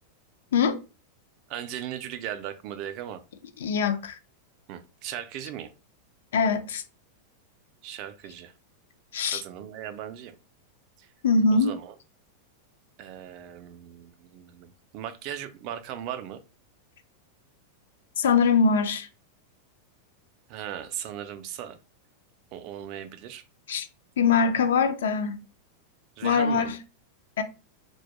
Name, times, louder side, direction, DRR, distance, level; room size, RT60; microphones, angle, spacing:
voice 1, 1.5-3.2 4.7-5.7 7.8-8.5 9.3-10.4 11.0-11.1 11.5-11.9 13.0-16.4 20.5-21.8 22.5-23.4 26.2-26.8, right 10 dB, 45° right, 0.3 m, -38 dB
voice 2, 3.6-4.2 6.3-6.8 9.1-9.4 11.2-11.7 18.2-19.1 23.7-23.9 24.2-25.4 26.2-26.8 27.4-27.5, left 5 dB, 90° left, 0.4 m, -23 dB
2.2 x 2.0 x 2.8 m
supercardioid pair, 145°, 0 cm